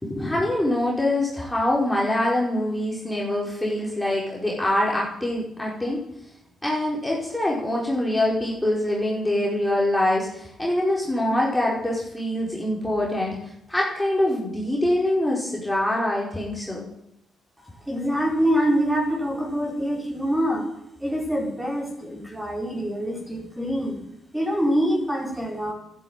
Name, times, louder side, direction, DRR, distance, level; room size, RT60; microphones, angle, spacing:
voice 1, 0.0-6.0 6.6-16.8, left 1 dB, 5° left, -4 dB, 5.1 m, -24 dB
voice 2, 17.7-20.6 21.0-24.0 24.3-25.7, equal, 10° right, -1 dB, 5.8 m, -25 dB
13.0 x 11.5 x 9.4 m, 0.77 s
cardioid pair, 90°, 0 cm